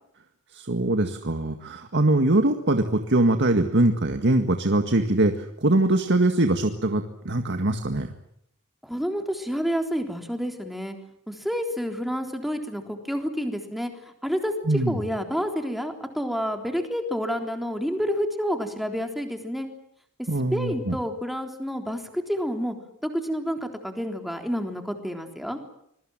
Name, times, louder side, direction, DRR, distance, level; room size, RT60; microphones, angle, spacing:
voice 1, 0.5-8.1 14.7-15.0 20.3-21.0, right 2 dB, 55° right, 6 dB, 1.9 m, -22 dB
voice 2, 8.8-11.0 11.3-19.7 20.5-22.8 23.0-25.6, equal, ahead, 4 dB, 3.6 m, -29 dB
26.0 x 22.5 x 7.5 m, 0.73 s
head